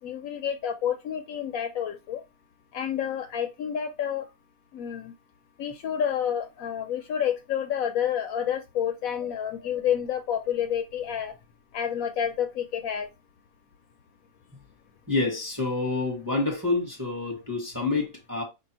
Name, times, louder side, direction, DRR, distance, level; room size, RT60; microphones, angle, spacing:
voice 1, 0.0-2.2 2.7-4.3 4.7-5.1 5.6-11.3 11.7-13.1, left 9 dB, 70° left, 0.9 m, -29 dB
voice 2, 15.1-18.4, left 3 dB, 15° right, 1.0 m, -28 dB
5.0 x 2.7 x 2.9 m
omnidirectional pair, 1.6 m